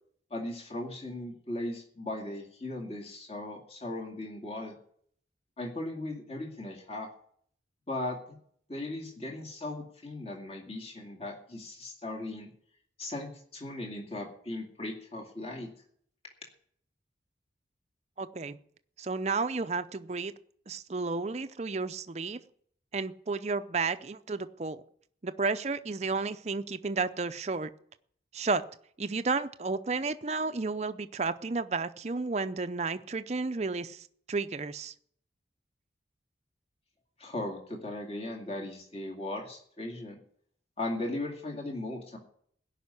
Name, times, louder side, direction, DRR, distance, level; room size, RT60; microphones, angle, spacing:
voice 1, 0.3-4.7 5.6-7.1 7.9-8.2 8.7-12.5 13.0-15.7 37.2-40.2 40.8-42.2, left 1 dB, 35° left, 0 dB, 2.3 m, -37 dB
voice 2, 18.2-18.6 19.0-20.3 20.7-22.4 22.9-24.8 25.2-27.7 28.3-28.6 29.0-34.9, right 4 dB, 35° right, 11 dB, 0.6 m, -32 dB
16.5 x 5.7 x 9.7 m, 0.63 s
head